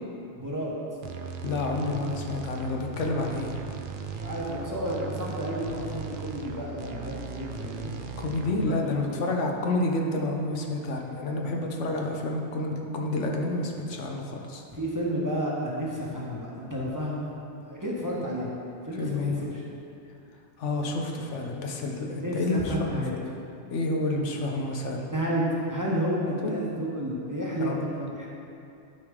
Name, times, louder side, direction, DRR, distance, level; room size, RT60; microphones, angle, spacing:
voice 1, 0.4-0.7 4.2-7.9 8.6-9.3 14.7-17.3 17.6-18.5 18.8-19.6 22.2-23.1 25.1-28.3, equal, 15° right, -5 dB, 1.0 m, -31 dB
sound 1, 1.0-8.7, right 5 dB, 55° right, 0.7 m, -37 dB
voice 2, 1.4-3.5 8.2-14.6 19.0-19.4 20.6-22.8 23.1-23.3 23.7-25.1 26.4-26.6 27.6-27.8, left 2 dB, 85° left, 1 dB, 1.2 m, -29 dB
11.5 x 4.8 x 3.7 m, 2.6 s
omnidirectional pair, 1.2 m